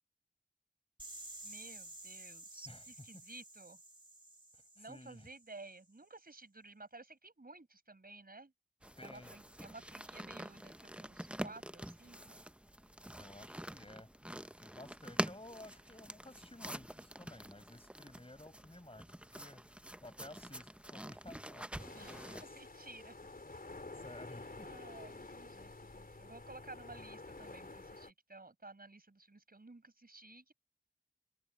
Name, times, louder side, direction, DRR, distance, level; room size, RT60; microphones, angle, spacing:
sound 1, 1.0-5.8, right 1 dB, 30° right, 2.1 m, -52 dB
voice 1, 1.4-3.8 4.8-8.5 9.0-12.4 21.9-23.1 24.6-30.5, right 3 dB, 75° right, 5.7 m, -54 dB
voice 2, 2.7-3.2 4.5-5.3 9.0-9.3 13.1-19.6 20.0-22.6 23.7-25.2, left 1 dB, 40° left, 7.1 m, -55 dB
sound 2, 8.8-22.4, right 1 dB, 5° right, 0.7 m, -46 dB
sound 3, 21.8-28.1, left 2 dB, 75° left, 3.9 m, -50 dB
wide cardioid pair, 40°, 15 cm